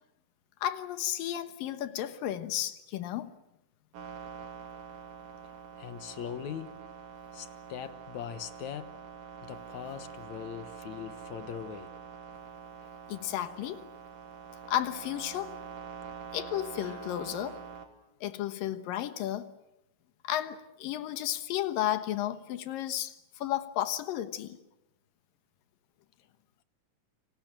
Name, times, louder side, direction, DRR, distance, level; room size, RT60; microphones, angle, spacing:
voice 1, 0.6-3.3 13.1-13.9 14.7-15.6 16.3-17.6 18.2-19.5 20.2-24.6, left 12 dB, 85° left, 3.0 m, -33 dB
sound 1, 3.9-17.9, right 7 dB, 75° right, 4.1 m, -45 dB
voice 2, 5.8-6.9 7.3-9.0 9.4-11.9, left 9 dB, 65° left, 2.3 m, -41 dB
29.0 x 26.0 x 7.6 m
omnidirectional pair, 3.9 m